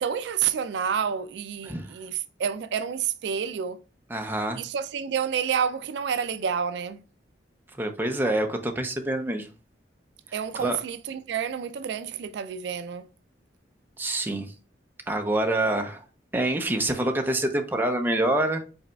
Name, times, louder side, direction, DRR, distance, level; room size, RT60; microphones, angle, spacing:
voice 1, 0.0-3.8 4.6-7.0 10.3-13.0, right 7 dB, 65° right, 0.3 m, -29 dB
voice 2, 4.1-4.6 7.8-9.5 10.5-10.8 14.0-14.5 15.1-16.0 16.3-18.6, right 1 dB, 10° right, 0.6 m, -26 dB
5.3 x 4.0 x 2.3 m
head